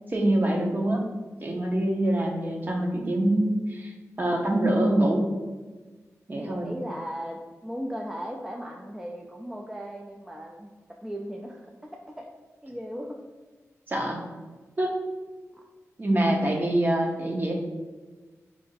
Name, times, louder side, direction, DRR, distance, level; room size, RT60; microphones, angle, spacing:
voice 1, 0.1-1.1 1.4-3.9 4.2-5.3 6.3-6.7 13.9-14.2 14.8-15.0 16.0-17.5, right 1 dB, 35° right, 0 dB, 0.8 m, -25 dB
voice 2, 6.4-12.3 12.6-13.2, equal, 10° right, -1 dB, 0.4 m, -37 dB
4.4 x 2.6 x 3.9 m, 1.3 s
wide cardioid pair, 80°, 6 cm